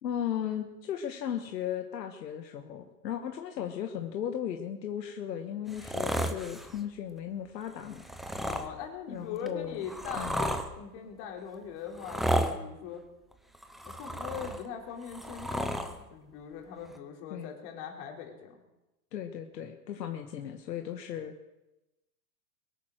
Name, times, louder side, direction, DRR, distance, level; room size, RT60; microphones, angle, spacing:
voice 1, 0.0-8.0 9.1-9.8 10.2-10.4 17.3-17.5 19.1-21.3, left 9 dB, 80° left, 5 dB, 1.5 m, -36 dB
sound 1, 5.7-6.8 7.9-8.7 9.5-10.7 11.9-12.6 13.5-14.7 15.0-15.9 16.9-17.0, equal, ahead, 0.6 m, -32 dB
voice 2, 8.4-13.0 13.8-18.6, left 7 dB, 45° left, 2 dB, 3.9 m, -41 dB
22.5 x 9.4 x 6.4 m, 0.97 s
hypercardioid pair, 135°, 49 cm